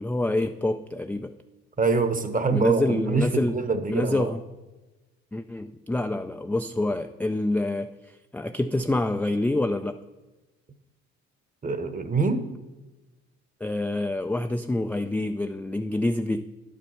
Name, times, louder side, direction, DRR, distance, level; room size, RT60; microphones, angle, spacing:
voice 1, 0.0-1.3 2.5-3.6 3.9-4.4 5.3-7.9 8.3-10.0 13.6-16.4, left 2 dB, 5° left, 7 dB, 0.3 m, -26 dB
voice 2, 1.8-4.3 11.6-12.5, right 4 dB, 25° right, 10 dB, 1.0 m, -25 dB
10.5 x 5.3 x 5.7 m, 1.1 s
supercardioid pair, 70°, 30 cm